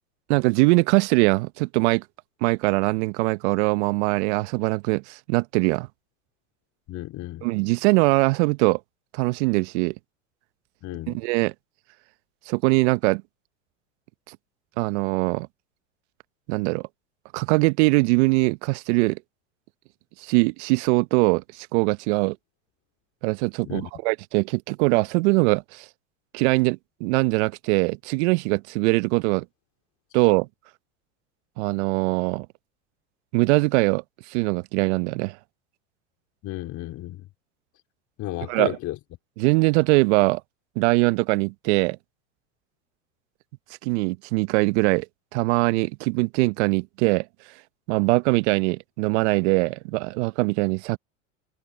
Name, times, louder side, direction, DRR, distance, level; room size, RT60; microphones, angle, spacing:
voice 1, 0.3-2.0 2.4-5.9 7.4-8.8 9.1-9.9 11.1-11.5 12.5-13.2 14.3-14.4 14.8-15.5 16.5-16.9 17.3-19.2 20.2-22.4 23.2-25.9 26.3-29.4 30.1-30.5 31.6-32.5 33.3-35.4 38.5-38.8 39.4-40.4 40.7-42.0 43.8-45.1 45.3-47.3 47.9-51.0, right 26 dB, 60° right, 1.3 m, -22 dB
voice 2, 6.9-7.5 10.8-11.2 23.6-23.9 36.4-37.3 38.2-39.0, left 16 dB, 45° left, 3.8 m, -33 dB
hypercardioid pair, 85°, 38 cm